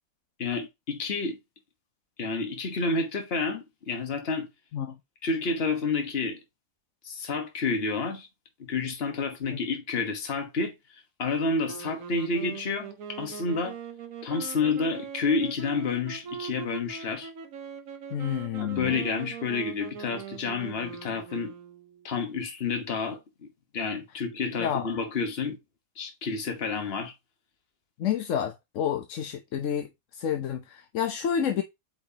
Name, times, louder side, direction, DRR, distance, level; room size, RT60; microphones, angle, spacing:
voice 1, 0.4-1.4 2.2-4.5 5.2-6.4 7.0-8.3 8.6-10.7 11.2-13.8 14.2-17.3 18.6-21.5 22.0-23.5 23.7-25.6 26.0-27.1, left 4 dB, 45° left, 1.5 m, -29 dB
sound 1, 11.6-22.1, right 7 dB, 65° right, 1.3 m, -42 dB
voice 2, 18.1-18.9 24.6-24.9 28.0-31.6, left 8 dB, 65° left, 1.0 m, -29 dB
8.5 x 4.7 x 2.8 m
omnidirectional pair, 1.6 m